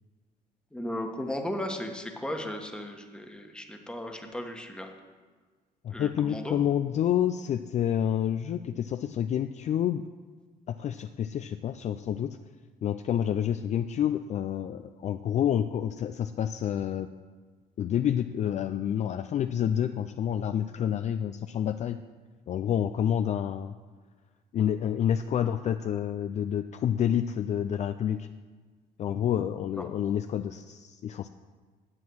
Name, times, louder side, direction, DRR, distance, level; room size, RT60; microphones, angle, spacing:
voice 1, 0.7-4.9 5.9-6.6, left 1 dB, 5° left, 3 dB, 1.3 m, -36 dB
voice 2, 5.8-10.0 10.7-12.4 12.8-17.1 17.8-22.0 22.5-23.7 24.5-28.3 29.0-31.3, left 9 dB, 45° left, 9 dB, 0.4 m, -28 dB
9.7 x 7.8 x 6.2 m, 1.5 s
cardioid pair, 110°, 17 cm